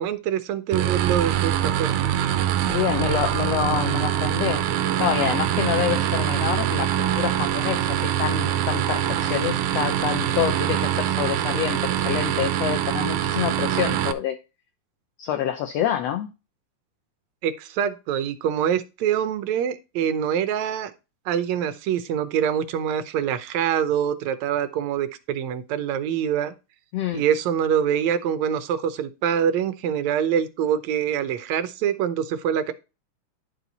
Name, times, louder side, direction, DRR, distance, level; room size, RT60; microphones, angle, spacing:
voice 1, 0.0-2.1 17.4-20.9 21.3-26.5 27.1-32.7, right 9 dB, 70° right, 2.1 m, -25 dB
sound 1, 0.7-14.1, right 11 dB, 90° right, 2.3 m, -24 dB
voice 2, 2.7-4.6 5.0-14.4 15.2-16.3 26.9-27.2, left 10 dB, 70° left, 1.8 m, -27 dB
11.0 x 4.7 x 3.9 m
omnidirectional pair, 3.4 m